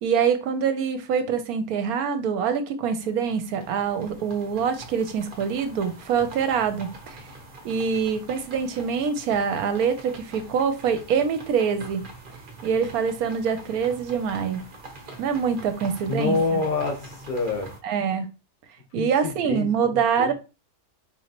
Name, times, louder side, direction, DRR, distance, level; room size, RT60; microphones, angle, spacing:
voice 1, 0.0-7.2 7.6-12.0 12.6-14.6 15.2-16.6 17.8-18.3 18.9-20.3, right 6 dB, 70° right, 1.0 m, -25 dB
sound 1, 2.8-17.8, right 2 dB, 40° right, 0.8 m, -44 dB
voice 2, 16.1-17.7 19.0-20.3, left 4 dB, 40° left, 0.9 m, -27 dB
4.5 x 2.8 x 2.9 m
omnidirectional pair, 1.7 m